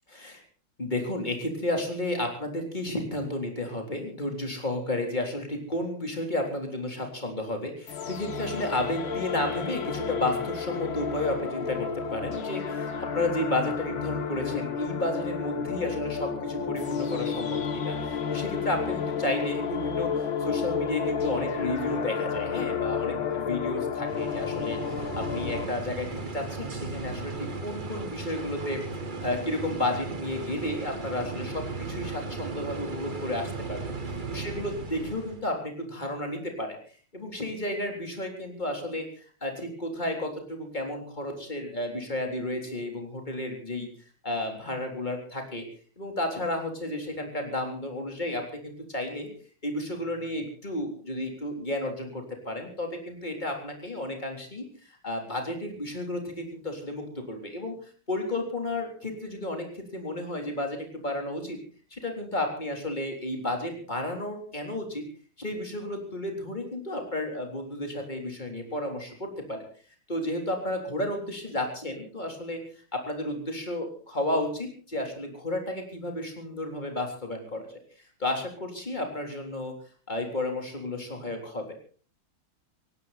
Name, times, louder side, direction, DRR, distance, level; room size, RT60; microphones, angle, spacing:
voice 1, 0.1-0.4 0.8-26.1 26.3-28.8 29.2-33.8 34.3-36.8 37.1-39.1 39.4-43.9 44.2-45.6 46.0-49.3 49.6-57.8 58.1-61.6 61.9-65.0 65.4-69.6 70.1-72.6 72.9-77.7 78.2-79.7 80.1-81.7, left 1 dB, 20° left, 3 dB, 3.9 m, -32 dB
sound 1, 7.9-25.7, left 6 dB, 70° left, 2.6 m, -31 dB
sound 2, 24.1-35.4, right 3 dB, 25° right, 1.4 m, -36 dB
18.5 x 16.5 x 4.3 m, 0.41 s
omnidirectional pair, 2.3 m